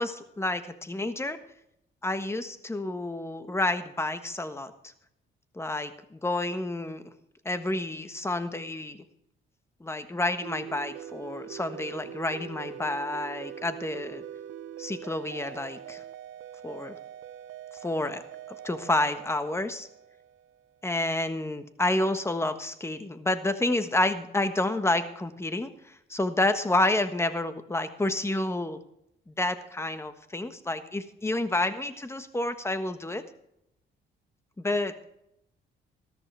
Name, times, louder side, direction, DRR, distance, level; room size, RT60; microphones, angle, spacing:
voice 1, 0.0-1.4 2.0-4.7 5.5-7.0 7.4-9.0 9.8-14.2 14.8-16.0 16.6-17.0 17.8-18.2 18.6-19.9 20.8-28.8 29.3-33.2 34.6-35.0, left 2 dB, 15° left, 9 dB, 1.4 m, -29 dB
sound 1, 10.4-20.7, right 10 dB, 75° right, 0.6 m, -43 dB
14.0 x 13.5 x 3.4 m, 0.78 s
cardioid pair, 90°, 20 cm